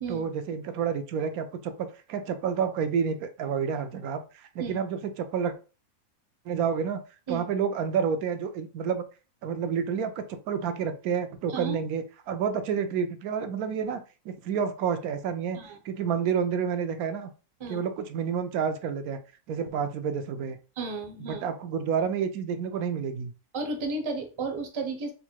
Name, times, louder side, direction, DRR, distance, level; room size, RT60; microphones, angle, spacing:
voice 1, 0.1-5.5 6.5-7.0 7.3-9.0 9.4-14.0 14.3-15.6 15.8-17.3 17.7-19.2 19.5-20.6 21.2-23.3, right 7 dB, 80° right, 9 dB, 1.1 m, -29 dB
voice 2, 20.8-21.4 23.5-25.1, right 3 dB, 30° right, 4 dB, 0.5 m, -33 dB
3.9 x 2.2 x 4.5 m, 0.33 s
omnidirectional pair, 1.5 m